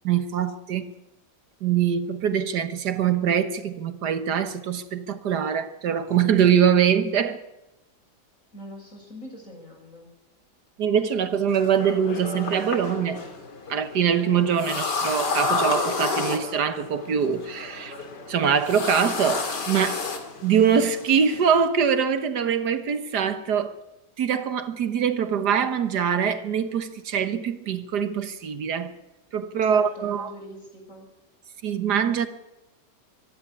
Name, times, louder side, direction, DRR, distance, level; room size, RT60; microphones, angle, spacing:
voice 1, 0.0-0.9 1.6-7.4 10.8-13.2 13.7-17.9 18.3-20.0 20.4-23.7 24.2-28.9 29.3-30.3 31.6-32.3, right 7 dB, 70° right, 1.7 m, -23 dB
voice 2, 8.5-10.1 29.6-31.1, equal, 45° left, 6.9 m, -43 dB
sound 1, 11.5-21.7, left 4 dB, 80° left, 3.0 m, -31 dB
24.5 x 11.0 x 9.8 m
omnidirectional pair, 1.8 m